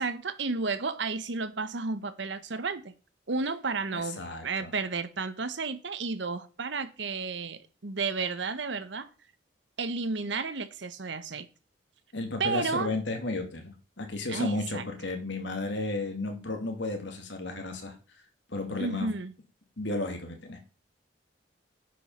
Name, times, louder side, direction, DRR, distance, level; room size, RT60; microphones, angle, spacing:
voice 1, 0.0-2.9 3.3-9.1 9.8-11.5 12.4-12.9 14.3-14.8 18.8-19.3, right 4 dB, 70° right, 0.9 m, -32 dB
voice 2, 3.9-4.7 12.1-17.9 18.5-19.1 19.8-20.6, left 2 dB, 70° left, 2.3 m, -33 dB
10.0 x 5.4 x 5.5 m
head